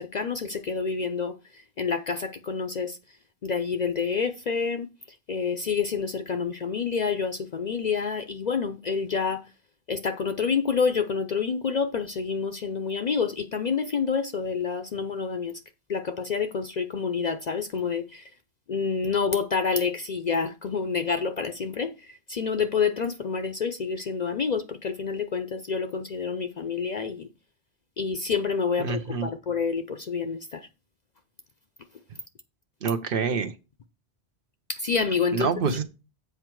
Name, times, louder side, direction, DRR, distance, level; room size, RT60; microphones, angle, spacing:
voice 1, 0.0-1.3 1.8-2.9 3.4-4.9 5.3-9.4 9.9-15.5 15.9-18.0 18.7-21.9 22.3-27.2 28.0-28.9 29.2-30.4 34.8-35.7, left 5 dB, 50° left, 0.6 m, -28 dB
voice 2, 28.8-29.3 32.8-33.5 35.3-35.8, right 5 dB, 60° right, 0.9 m, -26 dB
8.0 x 4.7 x 4.5 m
omnidirectional pair, 1.1 m